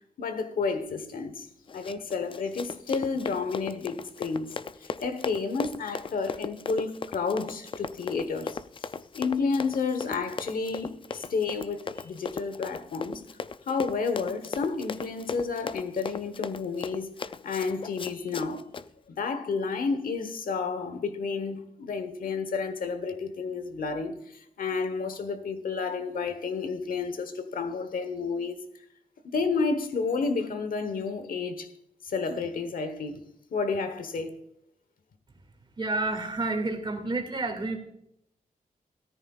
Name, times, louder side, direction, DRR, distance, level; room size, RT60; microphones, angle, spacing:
voice 1, 0.2-1.5 1.7-4.6 5.0-8.9 9.1-13.2 13.7-17.1 17.4-18.6 19.1-28.6 29.2-31.7 32.0-33.2 33.5-34.4, left 4 dB, 90° left, 1.1 m, -31 dB
Run, 1.7-18.9, left 5 dB, 40° left, 0.4 m, -37 dB
voice 2, 35.8-37.8, right 2 dB, 35° right, 2.1 m, -29 dB
14.0 x 13.5 x 2.4 m
wide cardioid pair, 140°, 14 cm